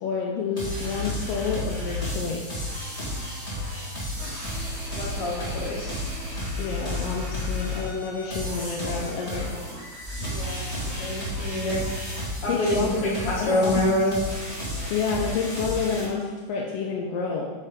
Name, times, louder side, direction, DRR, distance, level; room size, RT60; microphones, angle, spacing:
voice 1, 0.0-2.7 6.6-9.5 12.5-13.0 13.5-13.8 14.9-17.5, left 5 dB, 75° left, -2 dB, 1.6 m, -29 dB
sound 1, 0.6-16.0, left 1 dB, 15° left, 1.5 m, -32 dB
voice 2, 4.9-5.9 10.3-11.8 12.4-14.2, left 1 dB, 50° left, -6 dB, 2.5 m, -26 dB
8.8 x 4.5 x 3.7 m, 1.3 s
omnidirectional pair, 3.4 m